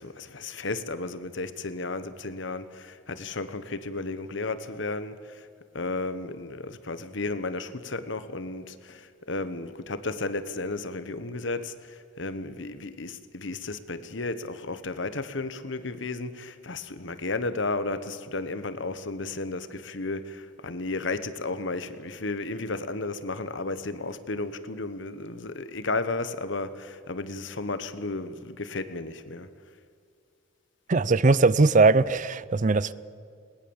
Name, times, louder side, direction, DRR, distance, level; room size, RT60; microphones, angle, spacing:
voice 1, 0.0-5.5 5.7-29.5, left 3 dB, 65° left, 1.3 m, -33 dB
voice 2, 30.9-32.9, right 3 dB, 40° right, 0.5 m, -20 dB
20.5 x 20.0 x 7.2 m
head